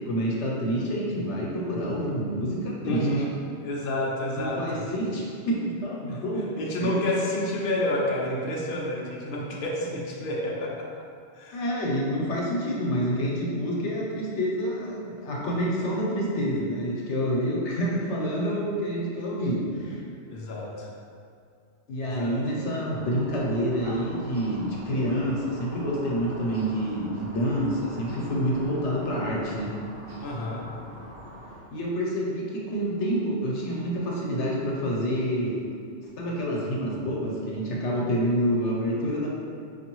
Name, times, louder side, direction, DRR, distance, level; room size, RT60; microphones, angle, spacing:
voice 1, 0.1-3.1 4.4-6.5 6.8-6.9 11.5-20.0 21.9-29.7 31.7-35.6 36.2-39.3, equal, 75° left, -4 dB, 1.0 m, -28 dB
voice 2, 2.8-3.3 3.6-4.8 6.1-6.2 6.6-10.9 11.4-11.6 20.3-20.9 22.1-22.3 30.2-30.6, left 1 dB, 60° left, -3 dB, 0.7 m, -29 dB
sound 1, 22.9-31.6, equal, 65° right, 1.2 m, -43 dB
5.2 x 2.6 x 3.0 m, 2.3 s
omnidirectional pair, 1.2 m